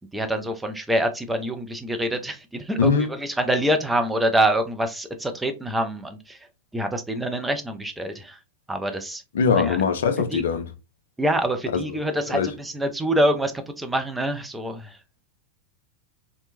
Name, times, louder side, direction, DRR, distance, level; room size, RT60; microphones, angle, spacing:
voice 1, 0.1-6.4 6.7-8.4 8.7-9.2 9.6-9.8 10.3-10.4 11.2-13.5 13.8-15.0, right 1 dB, 5° right, 0.4 m, -25 dB
voice 2, 2.8-3.1 9.3-10.7 11.7-11.8 12.3-12.5, left 6 dB, 60° left, 0.4 m, -21 dB
2.9 x 2.1 x 2.5 m
figure-of-eight pair, 90°, 0 cm